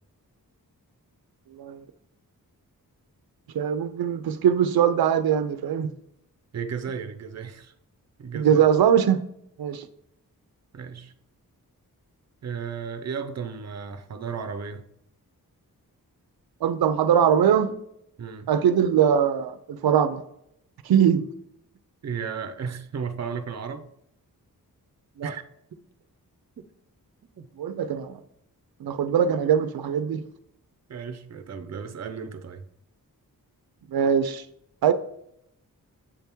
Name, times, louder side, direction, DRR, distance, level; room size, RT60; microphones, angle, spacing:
voice 1, 3.5-5.9 8.3-9.2 9.6-9.9 16.6-17.7 18.5-20.2 20.8-21.3 25.2-25.3 27.6-28.2 28.8-30.2 33.9-34.4 34.8-34.9, right 8 dB, 90° right, 0.6 m, -21 dB
voice 2, 6.5-7.7 8.2-8.6 10.7-11.1 12.4-14.8 18.2-18.5 22.0-23.8 25.2-25.4 26.6-26.7 27.3-27.5 29.4-29.5 30.9-32.6, right 6 dB, 45° right, 0.6 m, -34 dB
7.3 x 3.5 x 4.4 m
wide cardioid pair, 145°, 36 cm